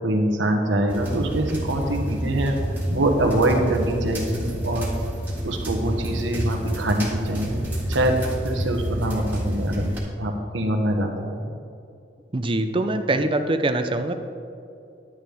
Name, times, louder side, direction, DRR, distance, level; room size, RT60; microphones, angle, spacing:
voice 1, 0.0-2.6 2.9-4.9 5.4-7.6 7.9-8.2 8.4-9.9 10.2-11.3, right 1 dB, 90° right, 3 dB, 1.3 m, -24 dB
sound 1, 0.9-10.0, equal, 10° right, 1.8 m, -28 dB
voice 2, 12.3-14.1, right 2 dB, 30° right, 8 dB, 0.5 m, -23 dB
11.0 x 9.0 x 3.5 m, 2.5 s
head